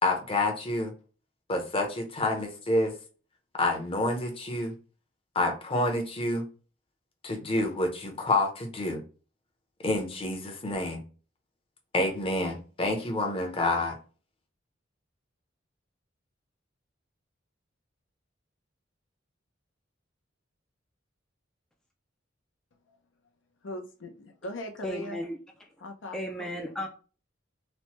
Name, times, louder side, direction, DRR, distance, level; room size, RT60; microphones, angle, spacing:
voice 1, 0.0-0.9 1.5-2.9 3.6-4.7 5.3-6.5 7.2-9.0 9.8-11.0 11.9-14.0, left 2 dB, 30° left, 3 dB, 0.7 m, -28 dB
voice 2, 23.6-25.2 25.8-26.6, left 1 dB, 80° left, 5 dB, 0.6 m, -40 dB
voice 3, 24.8-25.7 26.1-26.9, equal, 5° left, 2 dB, 0.3 m, -35 dB
3.1 x 2.1 x 2.9 m, 0.37 s
head